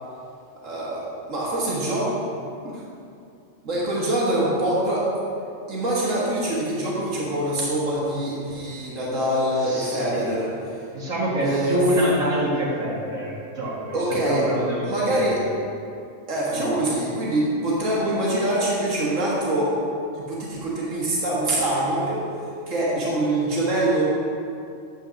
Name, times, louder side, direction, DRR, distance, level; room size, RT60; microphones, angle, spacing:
voice 1, 0.6-2.4 2.6-2.8 3.6-5.1 5.7-10.6 11.4-11.8 13.9-14.5 14.8-15.5 16.3-19.8 20.1-22.3 22.7-24.0, right 1 dB, 70° right, -6 dB, 2.0 m, -24 dB
voice 2, 9.6-10.3 10.9-15.3 16.5-16.7, equal, 90° right, -6 dB, 2.0 m, -26 dB
8.8 x 4.5 x 6.3 m, 2.5 s
omnidirectional pair, 1.4 m